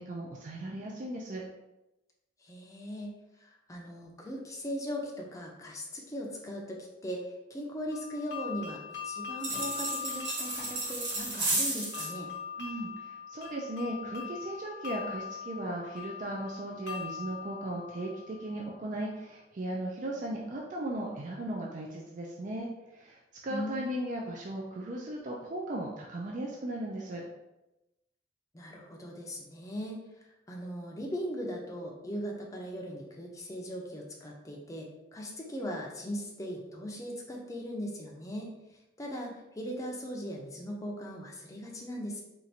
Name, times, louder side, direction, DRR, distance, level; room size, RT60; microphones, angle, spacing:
voice 1, 0.0-1.4 12.6-27.2, right 1 dB, 45° right, -1 dB, 0.4 m, -37 dB
voice 2, 2.4-3.1 3.4-8.8 9.0-12.3 23.5-24.0 28.5-30.1 30.5-38.5 39.0-42.2, equal, 20° left, -1 dB, 0.5 m, -39 dB
sound 1, 7.9-18.7, left 7 dB, 75° left, 0.9 m, -42 dB
sound 2, 9.4-12.1, right 2 dB, 85° right, 1.3 m, -33 dB
4.3 x 2.5 x 2.7 m, 0.96 s
head